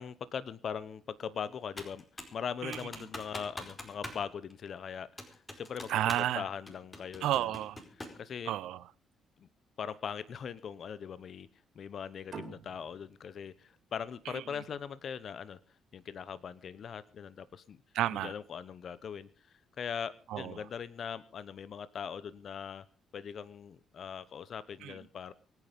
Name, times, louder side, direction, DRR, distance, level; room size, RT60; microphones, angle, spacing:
voice 1, 0.0-2.0 2.3-6.0 6.4-7.5 8.2-8.5 9.4-9.5 9.8-11.5 11.8-15.6 15.9-17.8 18.2-22.8 23.1-25.3, left 7 dB, 55° left, 0.9 m, -40 dB
Computer keyboard, 1.8-2.4 2.7-4.2 4.5-4.6 5.2-6.4 6.7-8.2, left 1 dB, 25° left, 4.7 m, -44 dB
voice 2, 5.9-6.4 7.2-7.8 8.5-8.8 14.3-14.4 17.9-18.3 20.3-20.6 24.8-25.0, right 13 dB, 85° right, 0.7 m, -31 dB
sound 1, 12.3-15.5, right 5 dB, 50° right, 3.9 m, -49 dB
24.5 x 9.4 x 5.2 m
cardioid pair, 90°, 0 cm